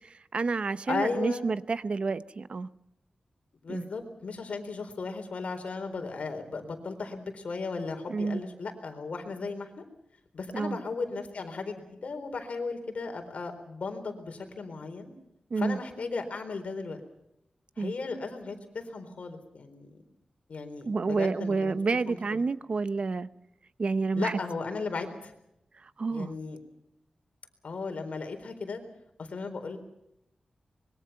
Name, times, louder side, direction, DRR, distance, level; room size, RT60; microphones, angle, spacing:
voice 1, 0.0-2.7 3.7-3.9 8.1-8.4 10.5-10.8 15.5-15.8 17.8-17.9 20.9-23.3 23.8-24.4 25.8-26.3, right 4 dB, 50° right, 14 dB, 0.7 m, -29 dB
voice 2, 0.9-1.5 3.6-9.8 10.3-15.1 15.6-17.0 17.8-19.9 20.5-21.7 22.1-22.4 24.2-25.3 26.1-26.6 27.6-28.8 29.2-29.8, left 4 dB, 65° left, 5 dB, 4.1 m, -36 dB
25.5 x 22.0 x 5.8 m, 0.82 s
wide cardioid pair, 140°, 2 cm